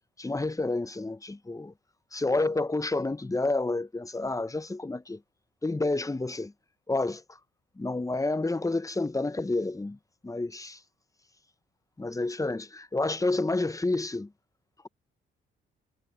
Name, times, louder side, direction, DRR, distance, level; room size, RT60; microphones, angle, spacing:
voice 1, 0.2-1.7 2.1-5.2 5.6-6.5 6.9-7.2 7.8-10.0 10.2-10.8 12.0-14.3, left 2 dB, 15° left, 0.9 m, -29 dB
cardioid pair, 65°, 21 cm